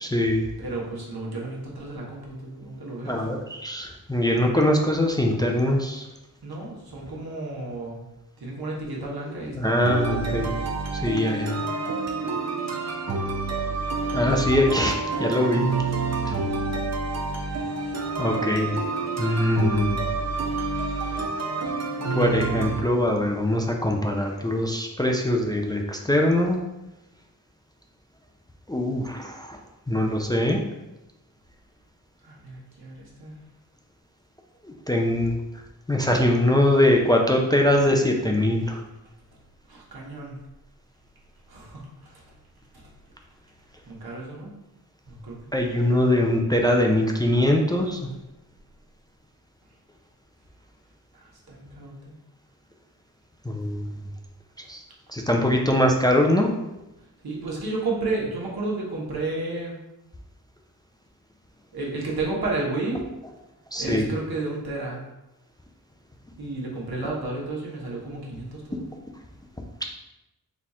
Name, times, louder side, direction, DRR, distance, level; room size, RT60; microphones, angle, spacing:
voice 1, 0.0-0.5 3.1-6.0 9.5-10.5 10.9-11.6 14.1-15.6 18.2-18.8 19.2-20.0 22.1-26.6 28.7-29.6 29.9-30.6 34.6-35.4 35.9-38.8 45.5-48.0 53.5-53.9 54.7-54.8 55.1-56.5 63.7-64.1, left 1 dB, 10° left, 1 dB, 0.4 m, -22 dB
voice 2, 0.6-3.6 6.4-8.0 8.4-10.7 32.2-33.3 39.7-40.4 41.5-42.2 42.7-42.8 43.9-44.5 45.1-45.6 51.1-52.1 57.2-59.8 61.7-63.0 63.8-65.0 66.4-68.9, right 2 dB, 80° right, -3 dB, 1.2 m, -32 dB
sound 1, 9.8-22.8, right 3 dB, 45° right, 0.6 m, -28 dB
4.2 x 2.4 x 4.1 m, 0.96 s
wide cardioid pair, 105°, 37 cm